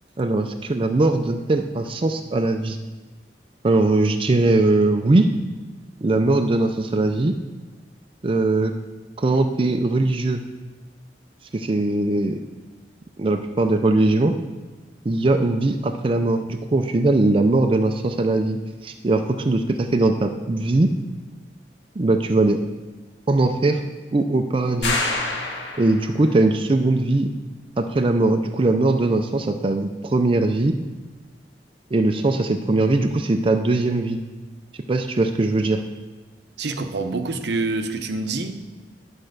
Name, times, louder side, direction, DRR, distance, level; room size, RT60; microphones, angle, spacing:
voice 1, 0.2-2.8 3.6-5.3 6.0-7.3 8.2-8.7 9.2-10.4 11.5-12.4 13.2-14.3 15.1-20.9 22.0-22.6 23.3-23.8 24.1-25.0 25.8-27.3 27.8-30.8 31.9-34.2 34.9-35.8, right 2 dB, 30° right, 5 dB, 0.4 m, -20 dB
sound 1, 24.8-26.3, left 2 dB, 90° left, 1.7 m, -26 dB
voice 2, 36.6-38.6, right 3 dB, 70° right, 7 dB, 0.7 m, -26 dB
10.5 x 4.4 x 6.5 m, 1.3 s
head